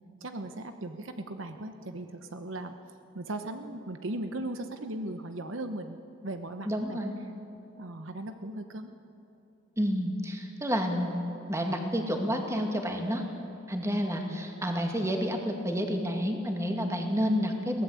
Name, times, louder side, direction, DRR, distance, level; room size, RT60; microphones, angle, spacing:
voice 1, 0.2-2.8 3.1-7.0 7.8-8.9 14.6-14.8, right 1 dB, 70° right, 7 dB, 1.0 m, -38 dB
voice 2, 6.7-7.2 9.8-11.2 11.5-13.2 13.7-17.8, equal, 15° right, 3 dB, 2.3 m, -29 dB
22.5 x 17.5 x 8.3 m, 2.9 s
head